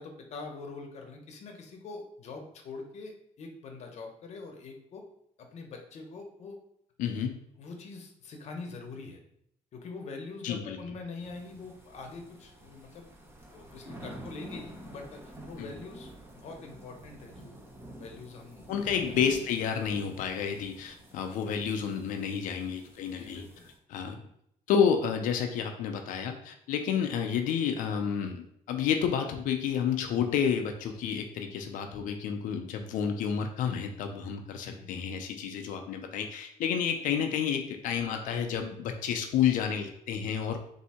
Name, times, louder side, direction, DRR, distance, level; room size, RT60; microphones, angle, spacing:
voice 1, 0.0-5.0 5.4-6.6 7.6-9.2 9.7-13.1 13.5-17.6 18.0-19.1 23.2-23.7 34.6-34.9, left 3 dB, 55° left, 3 dB, 0.8 m, -44 dB
voice 2, 7.0-7.4 10.4-10.8 15.6-15.7 18.7-23.4 23.9-24.2 24.7-40.6, left 7 dB, 85° left, 5 dB, 0.5 m, -30 dB
sound 1, 11.2-23.7, right 1 dB, 15° right, 0.9 m, -48 dB
3.5 x 2.7 x 4.2 m, 0.73 s
cardioid pair, 125°, 13 cm